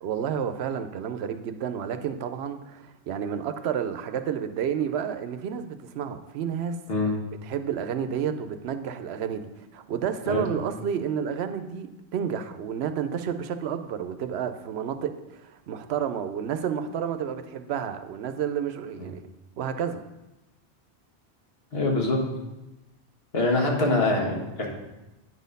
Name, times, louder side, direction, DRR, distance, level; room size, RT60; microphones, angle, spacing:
voice 1, 0.0-6.8 7.3-19.2 19.6-20.0, right 8 dB, 80° right, 9 dB, 0.8 m, -30 dB
voice 2, 21.7-22.2 23.3-24.7, left 2 dB, 70° left, -1 dB, 1.7 m, -24 dB
9.0 x 4.2 x 5.3 m, 1.0 s
omnidirectional pair, 1.1 m